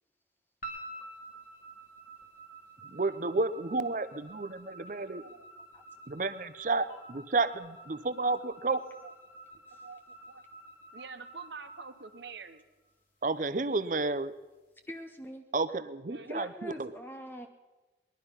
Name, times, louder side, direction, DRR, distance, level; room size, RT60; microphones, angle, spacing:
sound 1, 0.6-12.9, right 2 dB, 50° left, 1.9 m, -50 dB
voice 1, 2.9-5.2 6.1-8.8 13.2-14.3 15.5-16.9, right 3 dB, 45° right, 14 dB, 0.7 m, -31 dB
voice 2, 4.4-5.5 5.9-6.0 8.4-8.5 9.0-9.1 9.7-10.4 10.9-12.6 16.1-16.5, right 5 dB, 75° right, 9 dB, 1.1 m, -48 dB
voice 3, 14.9-15.4 16.2-17.5, equal, 10° left, 5 dB, 0.6 m, -43 dB
21.0 x 11.5 x 5.7 m, 1.2 s
head